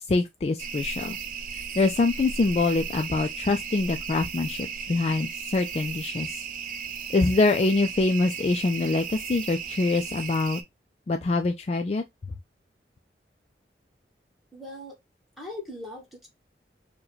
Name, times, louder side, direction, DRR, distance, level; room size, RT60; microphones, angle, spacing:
voice 1, 0.1-1.2 1.8-6.4 7.1-10.6 11.1-12.0, left 3 dB, 35° left, 0.3 m, -24 dB
sound 1, 0.6-10.6, right 6 dB, 50° right, 0.5 m, -36 dB
voice 2, 14.5-15.0 15.4-16.3, left 2 dB, ahead, 1.2 m, -39 dB
4.6 x 2.2 x 3.0 m
head